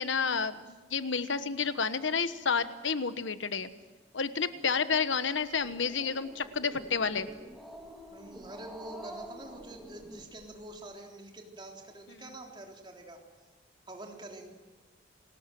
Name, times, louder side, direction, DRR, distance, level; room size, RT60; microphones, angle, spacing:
voice 1, 0.0-3.7 4.1-7.3, left 5 dB, 85° left, 12 dB, 1.2 m, -30 dB
Growling, 5.4-10.8, equal, ahead, 2.1 m, -48 dB
voice 2, 8.1-13.2 13.9-14.5, right 1 dB, 25° right, 1 dB, 3.5 m, -46 dB
29.5 x 20.0 x 7.7 m, 1.3 s
head